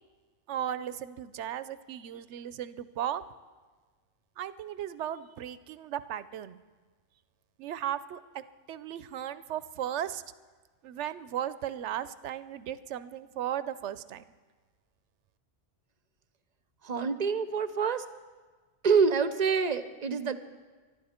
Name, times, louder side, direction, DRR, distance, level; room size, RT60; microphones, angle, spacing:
voice 1, 0.5-3.2 4.4-6.6 7.6-8.4 8.7-10.2 10.8-14.3, right 10 dB, 75° right, 14 dB, 0.9 m, -36 dB
voice 2, 16.8-18.0 18.8-20.4, right 5 dB, 40° right, 11 dB, 0.7 m, -26 dB
24.5 x 12.0 x 4.3 m, 1.4 s
omnidirectional pair, 1.2 m